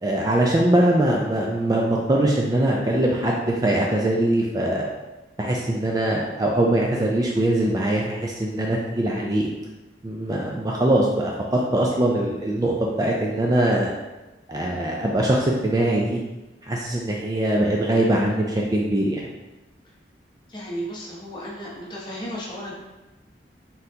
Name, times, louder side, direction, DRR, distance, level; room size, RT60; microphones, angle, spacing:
voice 1, 0.0-4.9 5.4-9.5 10.0-13.9 14.5-16.2 16.6-19.3, right 1 dB, 20° right, -2 dB, 0.3 m, -22 dB
voice 2, 20.5-22.7, equal, 25° left, -5 dB, 0.9 m, -34 dB
4.2 x 3.8 x 2.7 m, 1.1 s
head